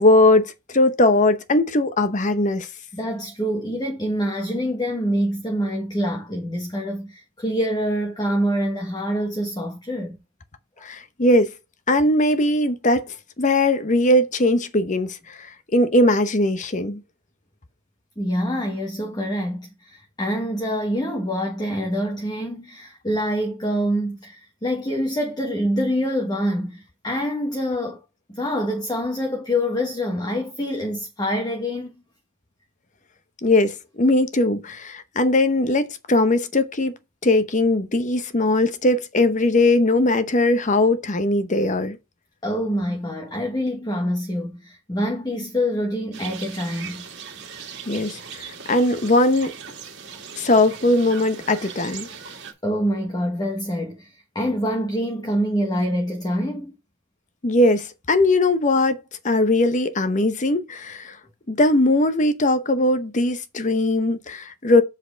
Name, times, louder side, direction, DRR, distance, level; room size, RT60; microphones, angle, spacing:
voice 1, 0.0-2.7 10.8-11.5 11.9-17.0 33.4-36.9 37.2-42.0 47.9-49.5 50.4-52.1 57.4-61.2 61.5-64.8, left 2 dB, 35° left, 0.8 m, -20 dB
voice 2, 2.9-10.1 18.2-28.0 28.3-31.9 42.4-47.0 52.6-56.8, equal, 20° left, 1.2 m, -25 dB
sound 1, 46.1-52.5, right 6 dB, 55° right, 2.2 m, -39 dB
7.7 x 4.2 x 4.9 m
head